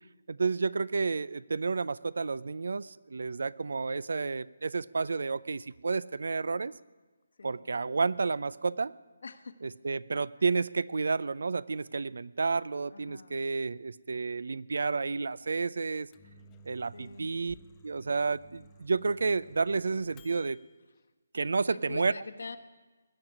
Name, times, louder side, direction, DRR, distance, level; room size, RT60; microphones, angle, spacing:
voice 1, 0.3-6.7 7.4-8.9 9.6-16.1 16.7-17.5 17.8-20.6 21.3-22.1, right 4 dB, 65° right, 20 dB, 0.5 m, -31 dB
voice 2, 9.2-9.5 12.9-13.4 16.9-17.3 21.7-22.6, left 4 dB, 65° left, 8 dB, 1.2 m, -44 dB
Microwave oven, 16.1-20.7, equal, 20° left, 1.0 m, -56 dB
20.0 x 7.3 x 9.6 m, 1.3 s
figure-of-eight pair, 150°, 0 cm